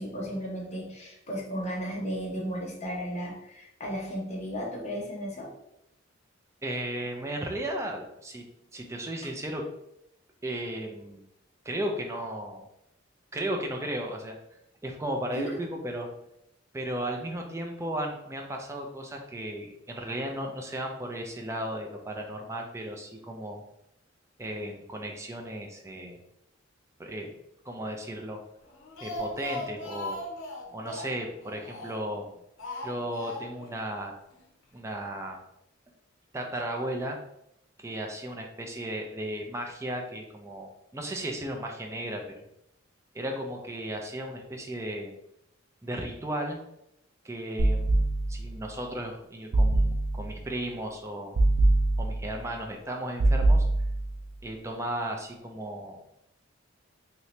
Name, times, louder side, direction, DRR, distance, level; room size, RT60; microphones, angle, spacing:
voice 1, 0.0-5.5 15.3-15.7, equal, 35° left, -3 dB, 0.9 m, -34 dB
voice 2, 6.6-8.4 8.7-9.7 10.4-11.2 11.6-12.6 13.3-14.4 14.8-16.1 16.7-23.6 24.4-26.2 27.0-27.3 27.7-28.4 29.0-30.2 30.7-32.3 32.8-34.1 34.7-35.4 36.3-37.2 37.8-42.4 43.1-45.1 45.8-46.6 47.2-51.4 52.0-53.6 54.4-56.1, right 1 dB, 15° right, 2 dB, 0.4 m, -35 dB
Speech, 28.7-32.2 32.6-33.7 34.0-34.1 34.4-34.5, left 1 dB, 80° left, 0.7 m, -38 dB
sound 1, 47.6-48.6 49.5-50.4 51.3-52.4 53.2-54.3, right 2 dB, 85° right, 0.5 m, -24 dB
2.9 x 2.7 x 3.2 m, 0.79 s
head